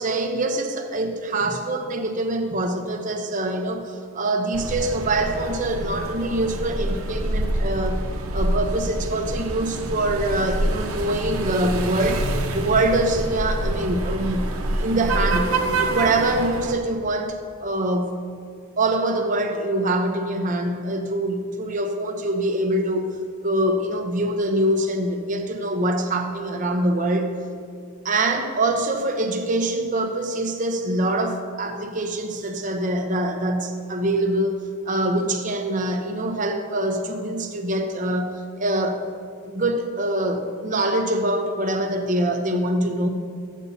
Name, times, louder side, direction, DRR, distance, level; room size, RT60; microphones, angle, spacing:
voice 1, 0.0-8.1 8.3-12.3 12.5-18.3 18.8-23.1 23.4-27.4 28.0-39.1 39.4-43.1, right 1 dB, 35° right, 5 dB, 0.7 m, -24 dB
sound 1, 4.5-16.7, right 1 dB, 90° right, 0.8 m, -26 dB
13.5 x 8.2 x 2.8 m, 2.3 s
head